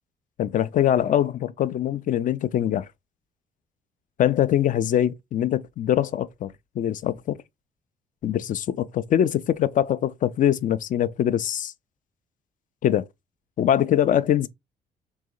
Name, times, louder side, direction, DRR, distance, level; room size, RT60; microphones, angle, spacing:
voice 1, 0.4-2.9 4.2-7.4 8.2-11.7 12.8-13.1 13.6-14.5, left 10 dB, 40° left, 0.4 m, -23 dB
3.1 x 2.6 x 3.7 m
figure-of-eight pair, 45°, 21 cm